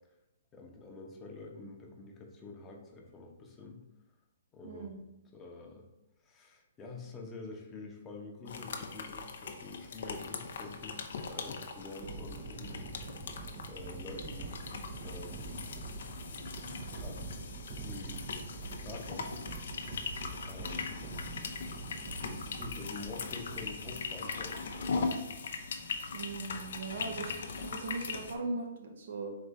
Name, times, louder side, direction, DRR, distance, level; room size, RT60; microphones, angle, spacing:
voice 1, 0.5-3.8 4.5-4.9 5.3-5.9 6.2-13.0 13.7-14.5 15.0-15.7 16.8-17.2 17.7-18.2 18.8-19.4 20.4-21.1 22.2-25.1, left 3 dB, 20° left, 0 dB, 0.8 m, -47 dB
voice 2, 4.6-5.0 26.1-27.3 27.6-29.3, right 3 dB, 60° right, 3 dB, 0.8 m, -39 dB
sound 1, 8.5-28.4, left 4 dB, 65° left, 0.5 m, -40 dB
sound 2, 12.0-25.3, right 3 dB, 35° right, 0.6 m, -45 dB
4.1 x 3.2 x 3.6 m, 0.91 s
hypercardioid pair, 130°, 0 cm